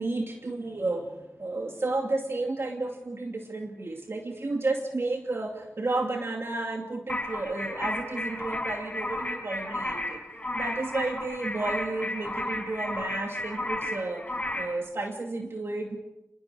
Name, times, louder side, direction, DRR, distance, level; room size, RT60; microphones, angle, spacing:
voice 1, 0.0-14.2 14.6-16.0, right 2 dB, 60° right, 2 dB, 2.6 m, -32 dB
sound 1, 7.1-14.8, left 1 dB, 25° left, 6.7 m, -33 dB
27.0 x 21.5 x 5.0 m, 0.91 s
wide cardioid pair, 55°, 5 cm